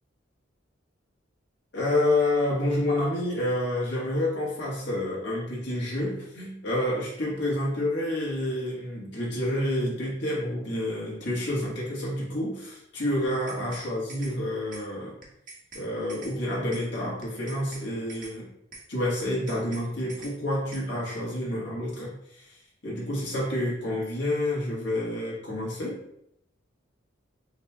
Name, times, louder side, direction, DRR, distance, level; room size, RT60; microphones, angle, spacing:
voice 1, 1.7-15.2 15.7-18.5 18.9-26.0, left 1 dB, 65° left, -5 dB, 1.6 m, -29 dB
sound 1, 13.2-13.8 14.1-14.3 14.7-14.8 15.2-16.3 16.7-16.8 17.2-17.8 18.1-18.3 18.7-18.8 19.2-19.8 20.1-20.3 20.7-20.8, right 3 dB, 45° right, 1.1 m, -44 dB
6.4 x 3.1 x 2.4 m, 0.76 s
head